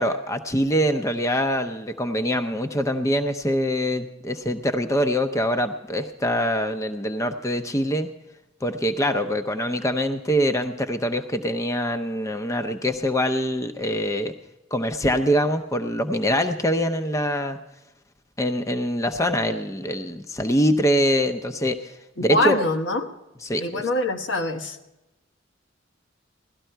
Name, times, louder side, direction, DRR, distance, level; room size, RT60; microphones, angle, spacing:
voice 1, 0.0-8.1 8.6-14.3 14.7-17.6 18.4-22.7 23.4-23.8, equal, 15° left, 8 dB, 0.6 m, -24 dB
voice 2, 22.2-23.1 23.6-24.8, left 2 dB, 75° left, 6 dB, 1.1 m, -24 dB
17.0 x 12.5 x 4.5 m, 1.0 s
head